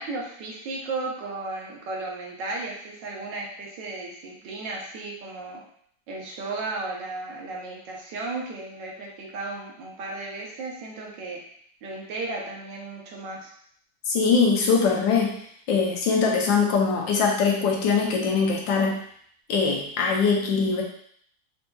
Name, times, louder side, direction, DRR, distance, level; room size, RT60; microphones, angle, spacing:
voice 1, 0.0-5.6 6.1-11.4 11.8-13.5, right 3 dB, 70° right, -1 dB, 1.3 m, -34 dB
voice 2, 14.1-15.3 15.7-19.0 19.5-20.8, left 5 dB, 75° left, 0 dB, 1.3 m, -22 dB
4.4 x 2.6 x 2.2 m, 0.63 s
omnidirectional pair, 2.1 m